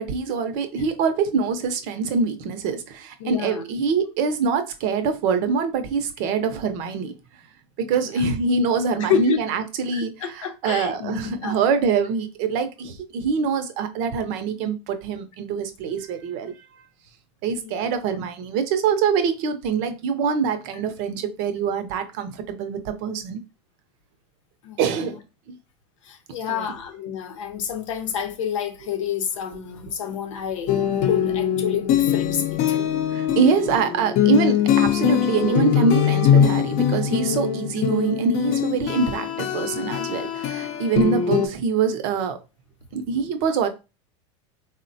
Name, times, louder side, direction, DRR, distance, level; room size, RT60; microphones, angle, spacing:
voice 1, 0.0-7.1 7.8-16.5 17.4-23.4 24.8-25.2 25.5-25.6 26.5-26.7 32.7-42.4 42.9-43.7, right 5 dB, 60° right, 0.6 m, -24 dB
voice 2, 3.2-3.6 9.0-9.4 9.9-11.6 17.6-17.9 24.6-24.8 26.0-30.8 31.0-32.8, left 8 dB, 90° left, 0.7 m, -28 dB
sound 1, 30.7-41.5, left 9 dB, 50° left, 0.6 m, -22 dB
3.5 x 2.1 x 2.6 m
supercardioid pair, 110°, 16 cm